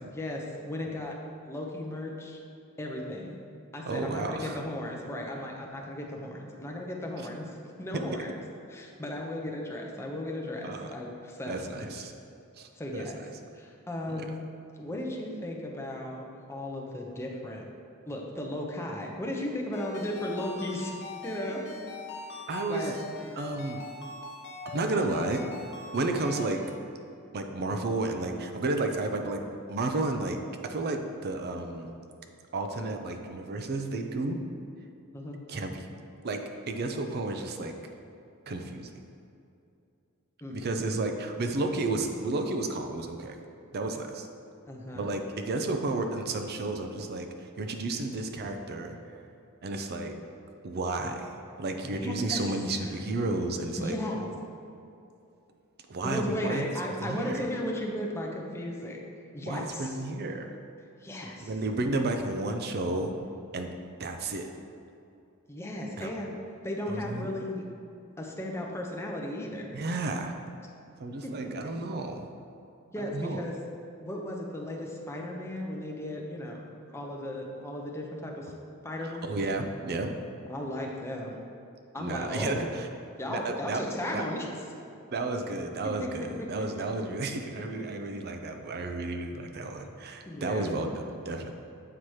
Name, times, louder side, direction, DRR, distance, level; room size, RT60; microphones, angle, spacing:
voice 1, 0.1-1.1 1.5-2.4 2.8-3.4 3.7-8.3 8.7-11.9 12.8-13.2 13.6-14.4 14.8-17.6 18.1-20.9 21.2-21.9 22.3-22.4 22.7-22.9 35.1-35.4 40.4-41.0 44.7-45.1 51.8-52.5 52.8-53.0 53.8-54.3 56.0-59.0 59.3-60.0 61.0-61.5 65.5-66.3 66.6-67.6 68.2-69.8 71.2-71.5 72.9-73.6 74.0-76.7 76.9-78.5 78.8-79.3 80.5-81.4 81.9-82.6 83.2-84.5 86.0-86.1 86.4-86.5 87.5-87.6 90.3-90.7, left 1 dB, 10° left, -1 dB, 0.6 m, -35 dB
voice 2, 3.8-4.6 10.6-10.9 11.5-12.1 12.6-13.1 14.1-14.3 22.5-23.0 23.4-23.8 24.7-25.4 25.9-26.6 27.3-31.9 32.5-34.4 35.5-35.9 36.2-36.4 36.7-37.7 38.5-38.9 40.5-43.4 43.7-44.3 44.9-49.0 49.6-50.2 50.6-51.3 51.6-54.0 55.9-56.6 57.0-57.5 59.5-60.5 61.4-63.1 63.5-63.7 64.0-64.5 66.0-66.1 66.9-67.3 69.7-70.3 71.0-72.3 73.0-73.4 79.2-80.1 82.0-82.9 83.3-83.8 84.1-84.2 85.1-91.6, right 2 dB, 45° right, 5 dB, 0.5 m, -32 dB
Ringtone, 19.7-26.6, left 3 dB, 50° left, 0.8 m, -41 dB
7.7 x 2.9 x 4.8 m, 2.6 s
head